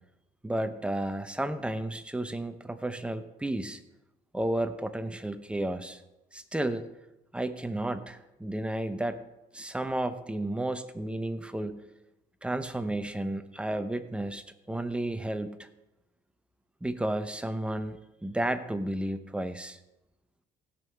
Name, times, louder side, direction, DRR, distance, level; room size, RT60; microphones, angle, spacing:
voice 1, 0.4-3.8 4.3-6.0 6.3-6.8 7.3-9.2 9.5-11.9 12.4-15.7 16.8-19.8, right 1 dB, 5° right, 10 dB, 0.7 m, -32 dB
16.5 x 5.5 x 4.6 m, 0.96 s
cardioid pair, 110°, 17 cm